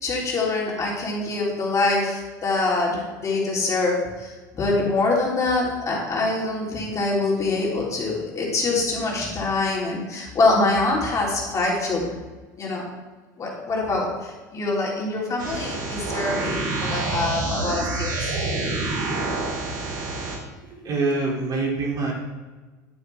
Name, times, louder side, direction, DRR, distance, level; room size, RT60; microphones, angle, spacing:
voice 1, 0.0-12.1 12.6-12.8 13.4-18.3, left 3 dB, 35° left, -3 dB, 3.3 m, -24 dB
sound 1, 15.4-20.4, right 2 dB, 85° right, 2.5 m, -27 dB
voice 2, 19.4-20.0 20.6-22.1, right 3 dB, 40° right, -1 dB, 2.8 m, -26 dB
9.9 x 8.7 x 3.5 m, 1.3 s
supercardioid pair, 95°, 10 cm